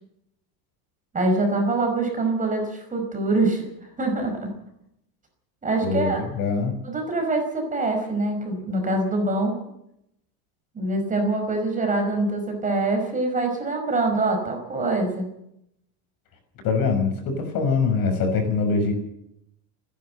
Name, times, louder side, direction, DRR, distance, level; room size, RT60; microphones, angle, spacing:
voice 1, 1.1-3.6 4.0-4.5 5.6-6.2 6.8-9.6 10.7-15.3, right 2 dB, 15° right, 4 dB, 5.1 m, -24 dB
voice 2, 5.8-6.7 16.6-18.9, left 4 dB, 45° left, 6 dB, 6.0 m, -23 dB
29.5 x 11.5 x 7.9 m, 0.79 s
cardioid pair, 160°, 47 cm